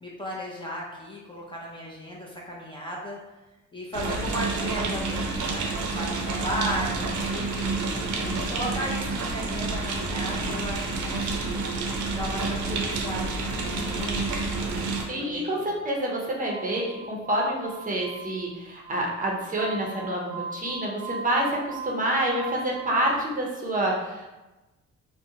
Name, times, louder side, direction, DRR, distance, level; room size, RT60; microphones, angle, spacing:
voice 1, 0.0-3.2 3.7-11.6 12.1-15.6, equal, 15° left, -4 dB, 0.5 m, -36 dB
sound 1, 3.9-15.0, right 3 dB, 75° right, 0.5 m, -29 dB
voice 2, 15.0-24.3, right 1 dB, 30° right, -2 dB, 0.6 m, -28 dB
Glass, 16.4-23.1, right 4 dB, 75° left, 0.9 m, -39 dB
2.5 x 2.1 x 2.7 m, 1.1 s
cardioid pair, 90°, 30 cm